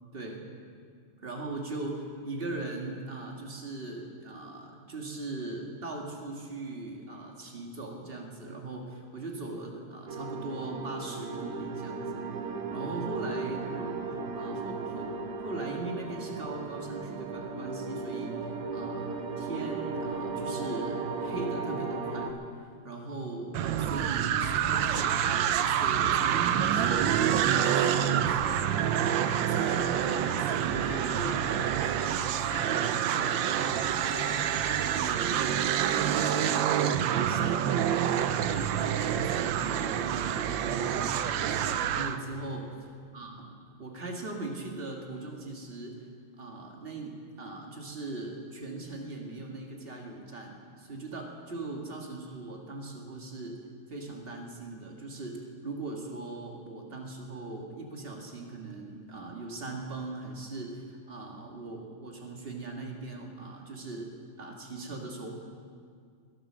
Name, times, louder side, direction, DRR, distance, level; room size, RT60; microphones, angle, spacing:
voice 1, 0.1-0.5 1.2-14.1 14.4-15.1 15.4-22.3 22.8-27.1 27.4-28.6 29.0-38.0 38.4-42.7 43.1-46.1 46.4-53.6 53.9-55.4 55.6-65.3, right 2 dB, 30° right, 1 dB, 1.8 m, -40 dB
sound 1, 10.1-22.3, right 4 dB, 60° right, 1.3 m, -36 dB
sound 2, 23.5-42.2, right 9 dB, 85° right, 1.3 m, -27 dB
sound 3, 24.4-37.5, left 3 dB, 70° left, 2.4 m, -48 dB
21.5 x 8.7 x 6.2 m, 2.1 s
omnidirectional pair, 2.1 m